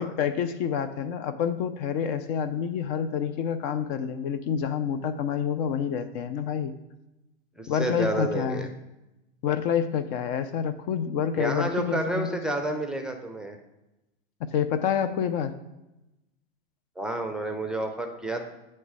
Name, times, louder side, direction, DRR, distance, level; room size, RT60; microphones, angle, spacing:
voice 1, 0.0-6.7 7.7-8.7 9.4-12.4 14.5-15.5, left 8 dB, 50° left, 11 dB, 0.5 m, -28 dB
voice 2, 7.6-8.7 11.3-13.6 17.0-18.4, right 1 dB, 5° right, 4 dB, 0.5 m, -30 dB
9.1 x 3.2 x 4.8 m, 0.95 s
hypercardioid pair, 120°, 30 cm